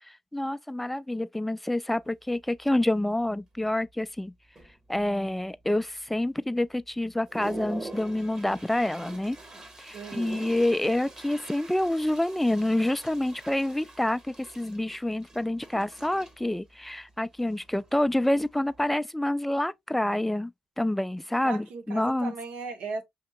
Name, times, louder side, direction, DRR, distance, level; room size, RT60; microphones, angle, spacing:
voice 1, 0.0-4.3 4.9-9.4 9.8-20.5 20.8-22.3, left 1 dB, 5° left, 0.3 m, -27 dB
Toilet flush, 2.0-2.1 2.6-2.8 3.1-3.7 4.2-4.3 4.6-5.3 5.8-5.9 6.4-6.5 6.9-18.9, right 2 dB, 35° right, 1.4 m, -45 dB
voice 2, 9.9-10.5 21.4-23.0, right 4 dB, 85° right, 0.9 m, -37 dB
5.1 x 2.8 x 2.2 m
cardioid pair, 75°, 2 cm